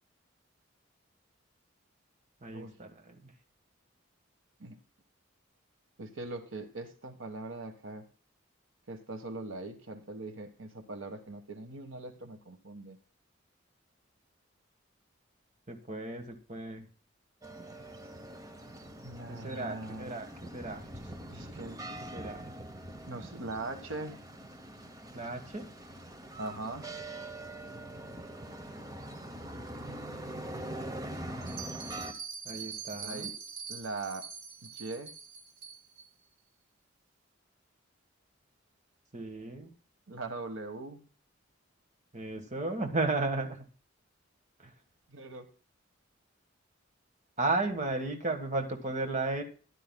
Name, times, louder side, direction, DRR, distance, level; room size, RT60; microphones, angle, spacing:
voice 1, 2.4-2.9 3.2-3.3 15.7-16.8 19.3-20.3 20.5-20.8 22.1-22.4 25.1-25.6 32.4-33.3 39.1-39.7 42.1-43.6 44.6-44.7 47.4-49.4, right 2 dB, 35° right, 5 dB, 1.5 m, -34 dB
voice 2, 6.0-8.1 8.9-13.0 19.0-20.2 21.3-21.8 23.1-24.2 26.4-26.9 33.0-33.3 33.7-34.2 34.6-35.1 40.1-41.0 45.1-45.5, right 2 dB, 85° right, 7 dB, 1.4 m, -41 dB
sound 1, 17.4-32.1, right 1 dB, 20° right, 1.0 m, -43 dB
Bell, 31.4-36.0, right 6 dB, 50° right, 1.8 m, -43 dB
14.5 x 11.5 x 2.3 m, 0.39 s
head